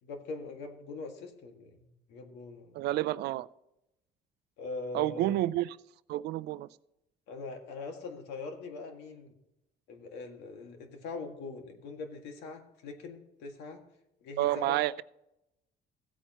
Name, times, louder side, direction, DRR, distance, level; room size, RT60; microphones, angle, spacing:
voice 1, 0.0-2.8 4.6-5.3 7.3-9.3 9.9-13.8 14.2-14.8, left 3 dB, 90° left, 1.9 m, -42 dB
voice 2, 2.8-3.5 4.9-5.8 6.1-6.7 14.4-15.0, right 15 dB, 80° right, 0.4 m, -29 dB
16.0 x 9.0 x 2.9 m
cardioid pair, 110°, 17 cm